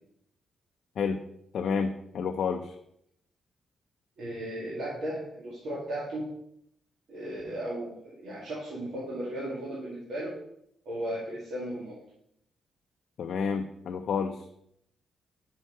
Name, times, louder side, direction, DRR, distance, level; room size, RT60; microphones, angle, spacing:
voice 1, 1.5-2.7 13.2-14.4, left 6 dB, 55° left, 4 dB, 0.4 m, -30 dB
voice 2, 4.2-6.3 7.1-10.3 10.9-12.0, right 1 dB, 80° right, -7 dB, 1.9 m, -35 dB
6.1 x 5.6 x 4.5 m, 0.74 s
wide cardioid pair, 180°, 0 cm